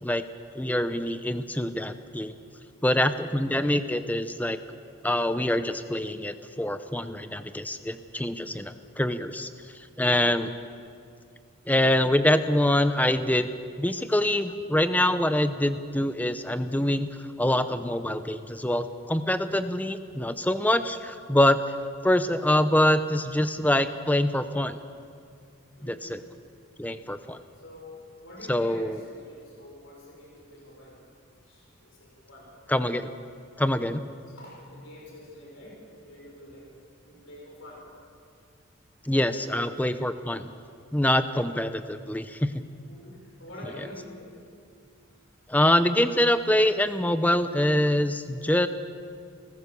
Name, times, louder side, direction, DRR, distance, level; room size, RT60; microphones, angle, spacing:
voice 1, 0.5-2.3 2.8-4.6 5.0-9.5 10.0-10.5 11.7-13.5 13.8-17.1 17.4-21.6 22.0-24.8 25.8-26.2 26.8-27.4 28.5-29.0 32.7-33.1 33.6-34.0 39.0-40.5 40.9-42.6 45.5-48.7, left 1 dB, 5° left, 11 dB, 0.7 m, -25 dB
voice 2, 25.8-26.2 27.5-32.5 34.3-36.7 37.0-37.8 39.1-39.5 42.8-44.3, left 1 dB, 65° left, -3 dB, 5.7 m, -47 dB
29.5 x 15.0 x 6.9 m, 2.3 s
head